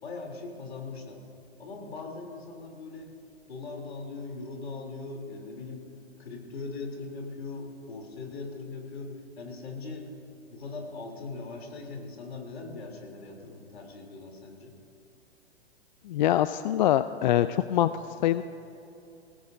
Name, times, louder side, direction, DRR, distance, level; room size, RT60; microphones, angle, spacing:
voice 1, 0.0-1.2 1.6-3.1 3.5-5.8 6.2-10.1 10.5-14.7, left 3 dB, 70° left, 1 dB, 3.4 m, -40 dB
voice 2, 16.1-18.4, left 12 dB, 45° left, 13 dB, 0.4 m, -24 dB
27.0 x 17.5 x 2.7 m, 2.8 s
hypercardioid pair, 120°, 32 cm